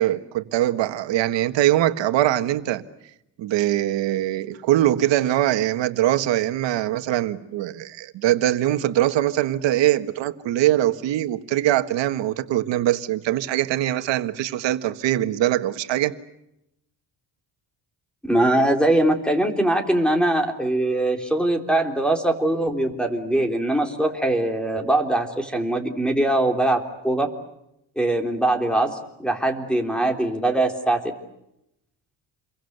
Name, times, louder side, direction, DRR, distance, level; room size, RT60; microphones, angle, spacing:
voice 1, 0.0-2.8 3.4-16.1, right 13 dB, 85° right, 1.6 m, -22 dB
voice 2, 18.2-27.3 27.9-31.0, right 1 dB, ahead, 3.5 m, -22 dB
28.5 x 23.0 x 8.0 m
cardioid pair, 130°, 43 cm